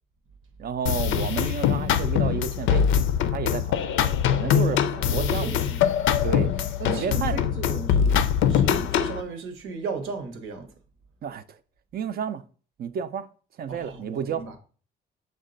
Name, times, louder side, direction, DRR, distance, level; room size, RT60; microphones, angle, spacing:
voice 1, 0.6-2.9 3.3-5.6 6.2-7.4 11.2-11.6 11.9-12.4 12.8-13.3 13.6-14.5, right 7 dB, 50° right, 0.4 m, -31 dB
sound 1, 0.9-9.2, left 8 dB, 80° left, 0.4 m, -23 dB
voice 2, 4.9-6.0 6.8-8.2 8.5-10.7 13.7-14.6, right 4 dB, 80° right, 0.9 m, -36 dB
6.2 x 2.2 x 3.8 m
cardioid pair, 90°, 20 cm